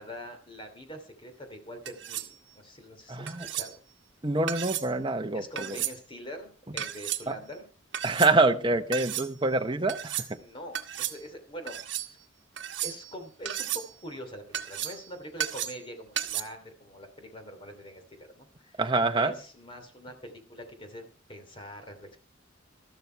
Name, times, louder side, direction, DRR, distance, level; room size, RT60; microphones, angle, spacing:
voice 1, 0.0-3.8 5.3-7.7 10.4-12.2 12.8-18.8 19.1-22.2, equal, 25° left, 2.9 m, -44 dB
sound 1, 1.9-2.3 3.3-3.7 4.5-4.9 5.6-6.0 6.8-7.2 7.9-8.3 8.9-9.3 9.9-10.3 10.7-11.2 11.7-12.1 12.6-13.1 13.5-13.9 14.5-15.0 15.4-15.9 16.2-16.4, right 11 dB, 60° right, 1.3 m, -33 dB
voice 2, 3.1-3.5 4.2-5.8 7.3-7.4 8.0-10.4 18.8-19.3, right 2 dB, 25° right, 1.0 m, -26 dB
13.5 x 12.5 x 4.6 m
head